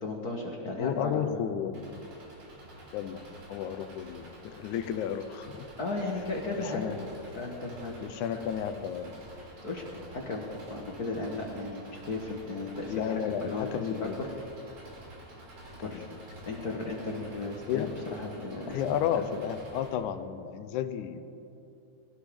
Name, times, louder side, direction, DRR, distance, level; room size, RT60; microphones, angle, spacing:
voice 1, 0.0-1.4 5.8-6.8 7.3-7.9 8.3-8.4 9.6-9.8 10.1-14.3 15.8-16.1 16.5-18.8 19.1-19.3, left 3 dB, 45° left, 0 dB, 1.2 m, -35 dB
voice 2, 0.8-2.0 2.9-5.6 6.6-7.0 8.0-9.1 12.9-14.2 15.6-16.2 17.7-17.9 18.7-21.2, left 9 dB, 90° left, 10 dB, 2.1 m, -33 dB
Engine, 1.7-19.9, right 1 dB, 65° right, 4.0 m, -49 dB
21.5 x 16.5 x 3.6 m, 2.7 s
omnidirectional pair, 3.5 m